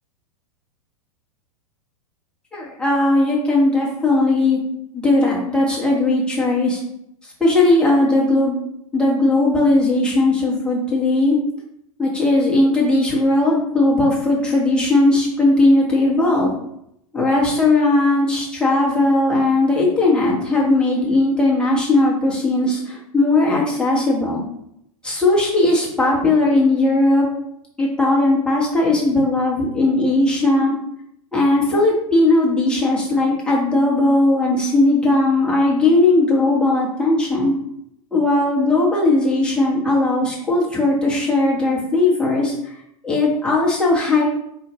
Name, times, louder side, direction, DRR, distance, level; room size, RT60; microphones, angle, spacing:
voice 1, 2.5-4.6 4.9-6.8 7.2-8.5 8.9-11.4 12.0-16.5 17.1-24.4 25.0-27.3 27.8-30.7 31.3-37.5 38.1-42.8 43.0-44.2, left 2 dB, 5° left, -5 dB, 1.3 m, -18 dB
4.4 x 2.7 x 3.0 m, 0.78 s
figure-of-eight pair, 100°, 18 cm